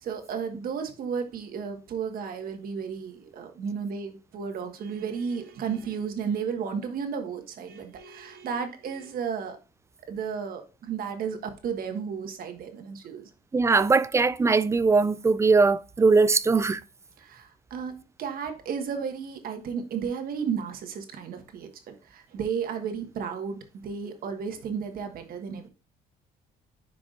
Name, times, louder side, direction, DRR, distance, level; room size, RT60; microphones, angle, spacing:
voice 1, 0.0-9.6 10.1-13.3 17.2-25.7, right 6 dB, 60° right, 1.5 m, -33 dB
voice 2, 13.5-16.8, right 4 dB, 15° right, 0.3 m, -21 dB
10.5 x 4.8 x 2.5 m
cardioid pair, 110°, 17 cm